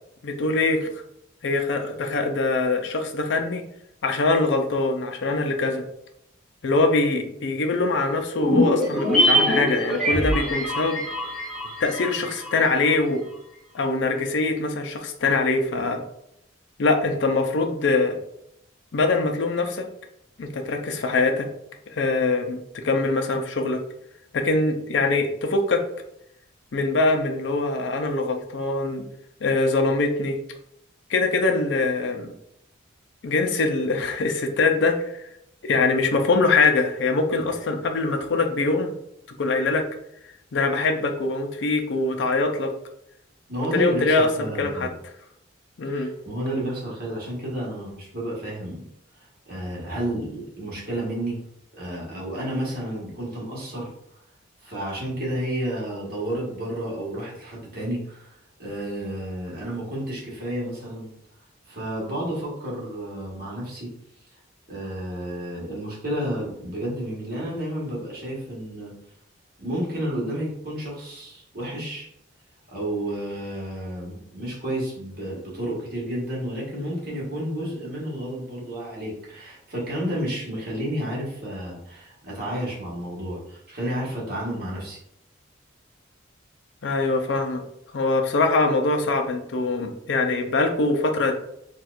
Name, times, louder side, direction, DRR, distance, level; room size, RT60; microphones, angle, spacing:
voice 1, 0.2-0.9 1.4-3.6 4.0-5.8 6.6-11.0 11.8-13.2 13.7-16.0 16.8-18.2 18.9-19.9 20.4-21.5 21.9-23.8 24.3-25.8 26.7-29.0 29.4-30.4 31.1-32.3 33.2-35.3 35.6-38.9 39.4-39.8 40.5-42.7 43.7-44.9 45.8-46.1 86.8-87.6 87.9-91.3, left 3 dB, 65° left, 5 dB, 0.5 m, -23 dB
sound 1, 8.4-12.9 13.1-13.2, equal, 5° left, 1.0 m, -23 dB
voice 2, 43.5-44.9 45.8-48.9 49.5-51.4 51.8-53.9 54.6-61.1 61.7-63.9 64.7-68.9 69.6-72.1 72.7-85.0, right 1 dB, 50° right, -5 dB, 1.3 m, -31 dB
4.2 x 2.4 x 2.4 m, 0.77 s
head